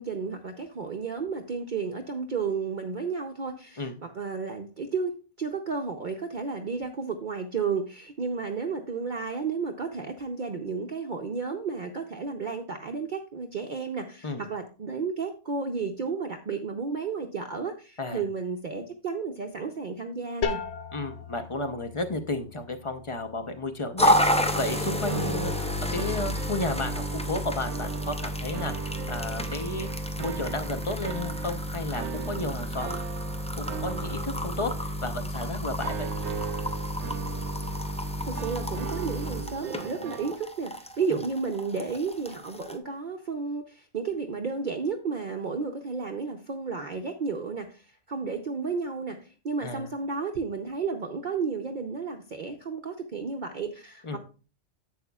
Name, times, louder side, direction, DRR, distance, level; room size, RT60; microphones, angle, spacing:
voice 1, 0.0-20.6 38.3-54.2, right 5 dB, 50° right, 4 dB, 0.7 m, -32 dB
sound 1, 20.4-26.0, left 6 dB, 80° left, 1.0 m, -39 dB
voice 2, 20.9-29.9 30.2-33.0 33.5-36.1 41.1-41.2 49.6-49.9 54.0-54.2, left 2 dB, 30° left, 8 dB, 0.7 m, -33 dB
sound 2, 24.0-42.8, equal, 10° left, 0.3 m, -31 dB
sound 3, 24.8-40.3, right 8 dB, 80° right, 0.9 m, -39 dB
10.5 x 7.8 x 2.3 m, 0.35 s
omnidirectional pair, 1.2 m